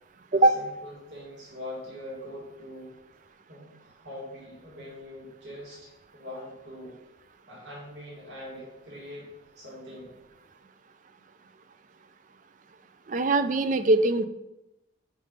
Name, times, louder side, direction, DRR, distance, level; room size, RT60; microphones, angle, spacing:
voice 1, 0.3-2.9 3.5-7.0 7.5-9.3 9.6-10.1, left 1 dB, 60° right, -6 dB, 2.3 m, -43 dB
voice 2, 13.1-14.3, right 2 dB, 40° right, 10 dB, 0.4 m, -21 dB
5.2 x 5.2 x 5.3 m, 0.96 s
head